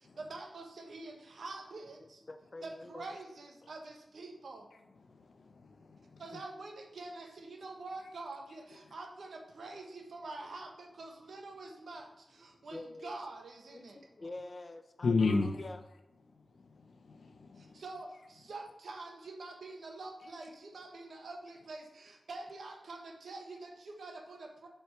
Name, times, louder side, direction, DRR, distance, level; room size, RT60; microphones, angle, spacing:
voice 1, 0.2-2.2 2.6-4.7 6.2-14.0 17.5-24.7, right 2 dB, 85° right, 1.2 m, -46 dB
voice 2, 2.0-3.1 3.6-3.7 5.1-6.4 12.6-13.1 13.7-15.8, left 2 dB, 35° left, 0.6 m, -48 dB
voice 3, 5.1-6.2 15.0-15.7 16.3-17.8, left 4 dB, 90° left, 0.8 m, -34 dB
6.7 x 4.3 x 4.7 m
wide cardioid pair, 120°, 0 cm